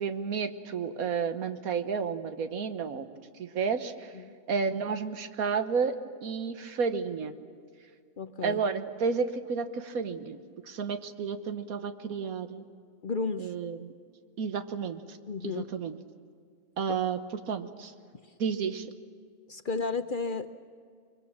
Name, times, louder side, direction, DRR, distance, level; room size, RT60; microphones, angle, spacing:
voice 1, 0.0-3.1 3.4-4.1 4.5-6.0 6.2-7.3 8.4-10.4 10.7-12.6 13.4-13.9 14.4-15.2 15.4-16.0 16.8-17.2 17.5-17.9 18.4-18.9, right 6 dB, 85° right, 9 dB, 1.6 m, -31 dB
voice 2, 8.2-8.6 13.0-13.5 15.3-15.7 19.5-20.5, left 4 dB, 50° left, 10 dB, 0.7 m, -32 dB
23.5 x 23.5 x 7.4 m, 2.2 s
omnidirectional pair, 1.5 m